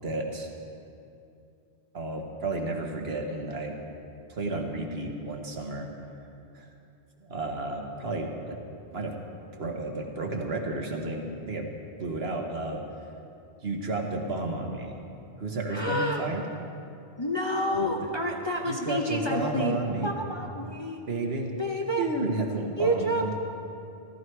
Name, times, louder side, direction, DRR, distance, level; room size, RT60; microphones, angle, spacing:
voice 1, 0.0-0.5 1.9-3.8 4.3-5.9 6.5-6.7 7.2-8.6 8.9-9.2 9.6-11.7 12.0-12.8 13.6-15.0 15.4-16.4 17.7-17.9 18.6-20.1 21.1-21.5 22.0-23.3, right 2 dB, 60° right, 2 dB, 1.5 m, -32 dB
voice 2, 15.7-16.3 17.2-21.0 21.6-22.1 22.8-23.3, equal, 25° left, 0 dB, 0.8 m, -29 dB
14.5 x 14.0 x 4.7 m, 2.6 s
omnidirectional pair, 1.2 m